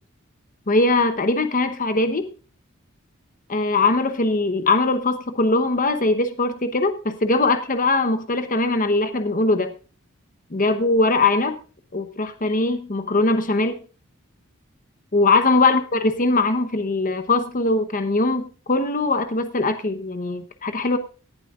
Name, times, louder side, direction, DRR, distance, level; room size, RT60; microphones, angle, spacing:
voice 1, 0.7-2.3 3.5-9.7 10.5-11.6 11.9-13.8 15.1-21.0, left 3 dB, 40° left, 9 dB, 1.0 m, -21 dB
18.0 x 11.0 x 2.5 m, 0.36 s
head